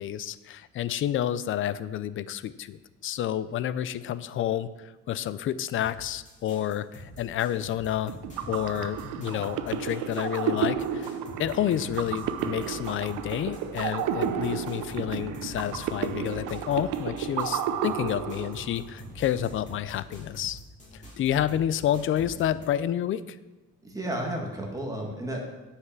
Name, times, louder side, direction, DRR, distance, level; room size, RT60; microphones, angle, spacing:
voice 1, 0.0-8.2 8.5-11.1 11.4-20.6 21.2-23.4, left 11 dB, 45° left, 16 dB, 0.4 m, -29 dB
sound 1, 5.8-22.7, equal, 25° left, 2.5 m, -46 dB
sound 2, 8.1-18.9, right 8 dB, 90° right, 0.7 m, -32 dB
voice 2, 23.8-25.4, right 1 dB, 10° right, -1 dB, 1.6 m, -32 dB
9.6 x 5.8 x 5.9 m, 1.1 s
cardioid pair, 155°, 30 cm